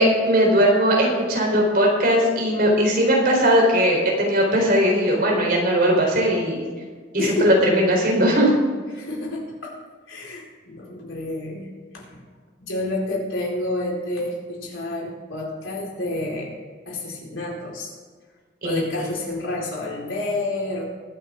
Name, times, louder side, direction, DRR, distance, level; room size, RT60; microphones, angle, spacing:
voice 1, 0.0-6.7 7.1-8.5 18.6-19.1, equal, 50° right, -1 dB, 4.1 m, -19 dB
voice 2, 7.2-7.5 9.0-9.7 10.1-12.2 12.6-16.5 16.9-18.0 18.6-20.9, left 2 dB, 90° left, -2 dB, 4.3 m, -29 dB
22.0 x 9.2 x 3.8 m, 1.5 s
head